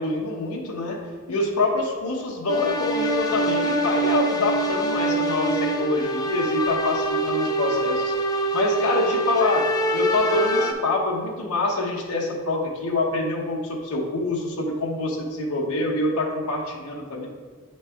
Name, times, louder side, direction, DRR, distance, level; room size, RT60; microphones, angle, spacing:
voice 1, 0.0-8.1 8.5-17.3, left 2 dB, 85° left, -1 dB, 0.9 m, -26 dB
sound 1, 2.5-10.7, right 1 dB, 15° left, 0.3 m, -24 dB
9.1 x 3.2 x 3.4 m, 1.6 s
head